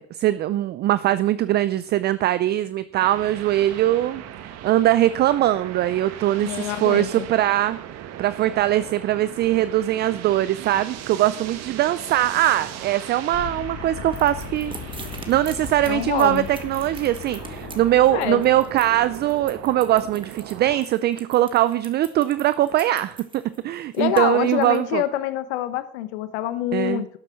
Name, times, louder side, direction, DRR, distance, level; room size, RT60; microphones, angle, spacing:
voice 1, 0.0-7.8 8.2-14.7 15.3-25.0 26.7-27.0, right 13 dB, 30° right, 15 dB, 0.4 m, -21 dB
sound 1, 3.0-20.8, right 10 dB, 45° right, 1.6 m, -38 dB
voice 2, 6.4-7.3 15.9-16.5 18.1-18.4 23.9-27.1, left 13 dB, 70° left, 13 dB, 1.0 m, -26 dB
sound 2, 13.3-19.6, left 12 dB, 35° left, 0.7 m, -39 dB
sound 3, 14.1-24.8, right 3 dB, 15° right, 1.9 m, -42 dB
12.0 x 7.5 x 6.3 m, 0.65 s
hypercardioid pair, 110°, 35 cm